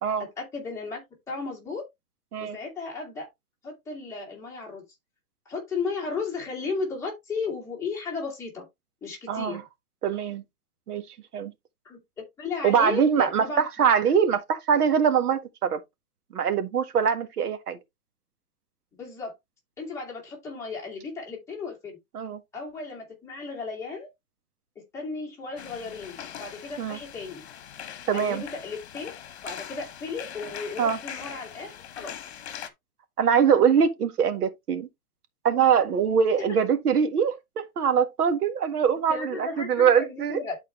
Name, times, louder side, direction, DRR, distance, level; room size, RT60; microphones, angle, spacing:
voice 1, 0.4-1.8 2.4-3.3 3.6-4.8 5.5-8.6 9.0-9.6 11.8-12.0 12.4-13.7 19.0-19.3 19.8-21.9 22.5-24.1 24.9-27.4 28.1-29.1 29.4-32.4 36.4-36.5 39.1-40.6, left 4 dB, 5° left, 2.1 m, -35 dB
voice 2, 9.3-9.6 10.0-10.4 10.9-11.0 11.3-11.5 12.6-13.4 13.8-15.8 16.3-17.8 22.1-22.4 26.8-27.0 28.1-28.4 30.8-31.0 33.2-34.9 35.4-40.4, right 7 dB, 90° right, 1.7 m, -23 dB
sound 1, 25.6-32.7, left 9 dB, 45° left, 1.4 m, -41 dB
11.0 x 4.5 x 3.2 m
hypercardioid pair, 175°, 44 cm